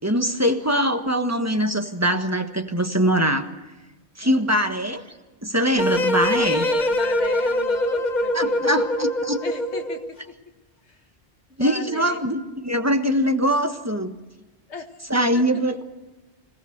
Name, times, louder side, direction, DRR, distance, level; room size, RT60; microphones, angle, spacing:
voice 1, 0.0-3.5 4.2-5.0 5.4-6.7 8.3-9.4 11.6-14.1 15.1-15.8, equal, 15° right, 6 dB, 1.3 m, -22 dB
sound 1, 5.8-10.1, left 1 dB, 40° left, 1.4 m, -23 dB
voice 2, 6.4-8.6 9.4-10.4 10.9-11.0 11.5-12.2 14.7-15.0 15.3-15.4, left 4 dB, 85° left, 5 dB, 2.1 m, -36 dB
25.5 x 18.0 x 6.7 m, 1.2 s
omnidirectional pair, 1.1 m